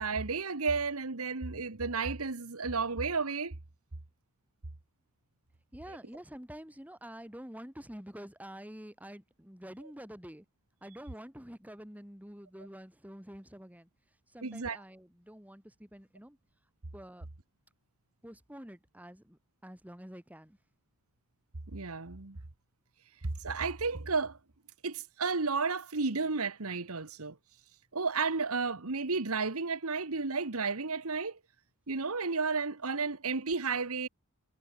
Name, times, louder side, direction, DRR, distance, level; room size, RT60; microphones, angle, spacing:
voice 1, 0.0-3.5 14.4-14.8 21.7-22.4 23.4-24.4 24.8-27.3 27.9-31.4 31.9-34.1, right 4 dB, 75° right, 1.5 m, -32 dB
voice 2, 5.7-10.5 10.8-13.9 14.3-16.4 16.9-17.3 18.2-20.6, equal, 5° right, 4.1 m, -48 dB
head